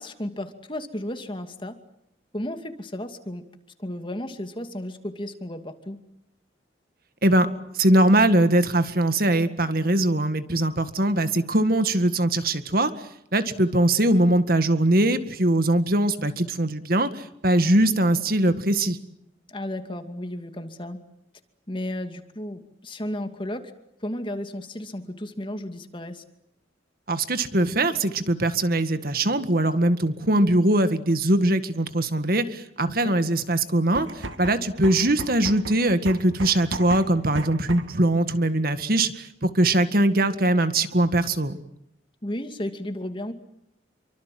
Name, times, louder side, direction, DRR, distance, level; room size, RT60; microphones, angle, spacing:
voice 1, 0.0-1.8 2.3-3.4 3.8-6.0 19.5-21.0 21.7-23.7 24.0-26.2 32.9-33.2 42.2-43.3, left 1 dB, 25° left, 7 dB, 2.5 m, -33 dB
voice 2, 7.7-12.9 13.3-19.0 27.1-41.6, right 1 dB, 50° right, 10 dB, 1.9 m, -21 dB
sound 1, 33.8-38.0, right 2 dB, 90° right, 2.5 m, -35 dB
28.5 x 24.5 x 7.7 m, 0.78 s
head